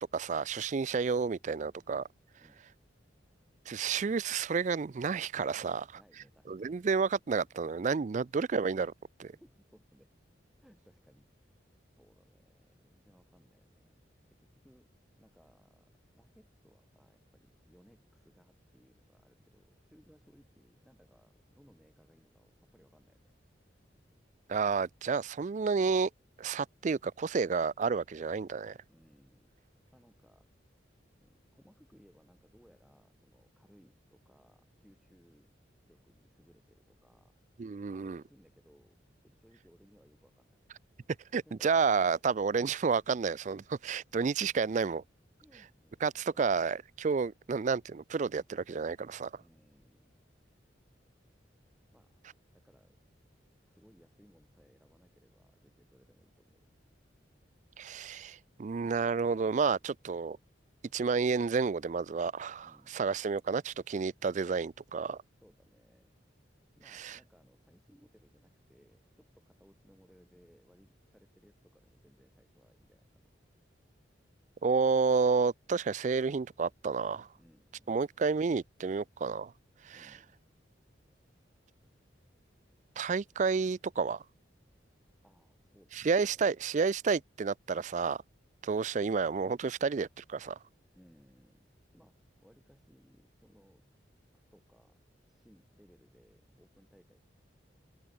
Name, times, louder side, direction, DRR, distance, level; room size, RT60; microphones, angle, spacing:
voice 1, 0.0-2.1 3.7-5.8 6.5-8.9 9.2-9.3 24.5-26.1 26.4-28.8 37.6-38.2 41.3-45.0 46.0-49.3 57.8-60.4 60.9-65.2 66.9-67.2 74.6-77.3 77.9-79.5 79.8-80.0 83.0-84.2 86.0-88.2 88.6-90.6, right 5 dB, 40° right, 0.4 m, -30 dB
voice 2, 5.5-6.8 9.4-10.1 10.6-11.5 12.0-14.9 15.2-23.4 28.9-29.5 29.9-30.5 31.2-35.5 35.8-37.4 37.9-40.6 45.4-46.8 49.4-50.1 51.9-52.2 52.5-53.0 53.6-56.6 62.6-63.0 65.4-66.2 66.8-73.3 77.4-77.9 79.9-80.4 85.2-86.5 90.9-93.9 94.5-95.0 95.3-97.2, equal, ahead, 5.8 m, -64 dB
head